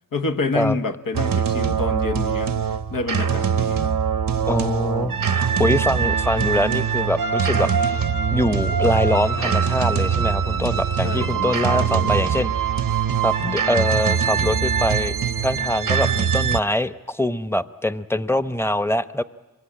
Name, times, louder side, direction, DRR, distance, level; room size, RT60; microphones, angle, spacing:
voice 1, 0.1-3.9 5.0-5.4 11.0-12.2 12.9-13.0 13.4-13.6, left 3 dB, 85° left, 6 dB, 1.2 m, -28 dB
sound 1, 1.1-16.6, right 7 dB, 80° right, 0.8 m, -22 dB
voice 2, 4.5-8.0 8.3-12.5 13.2-15.1 15.4-19.2, left 1 dB, 5° left, 13 dB, 0.8 m, -23 dB
26.0 x 23.0 x 8.7 m, 1.1 s
wide cardioid pair, 50°, 32 cm